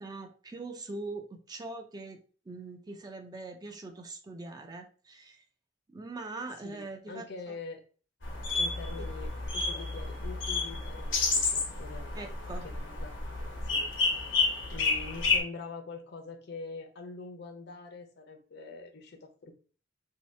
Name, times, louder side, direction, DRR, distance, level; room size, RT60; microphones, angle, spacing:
voice 1, 0.0-2.2 2.5-5.4 5.9-7.5 9.0-9.1 12.1-12.6, right 3 dB, 20° right, 5 dB, 0.3 m, -42 dB
voice 2, 6.6-7.8 8.5-13.2 13.7-13.9 14.2-19.5, left 3 dB, 60° left, 5 dB, 0.6 m, -45 dB
sound 1, 8.2-15.4, left 4 dB, 80° left, 0.9 m, -31 dB
2.8 x 2.7 x 3.1 m, 0.40 s
head